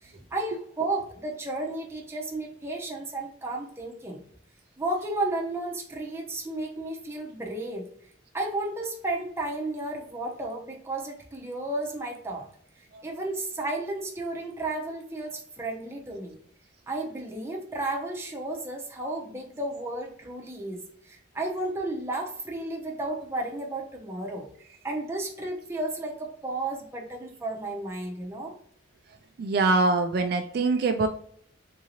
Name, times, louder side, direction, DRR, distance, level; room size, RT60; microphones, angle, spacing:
voice 1, 0.0-4.2 4.8-7.8 8.3-12.5 13.0-16.4 16.9-24.5 24.8-28.5, right 2 dB, 15° right, -1 dB, 0.6 m, -33 dB
voice 2, 29.4-31.1, right 3 dB, 55° right, 6 dB, 0.3 m, -23 dB
3.7 x 2.7 x 2.9 m, 0.62 s
head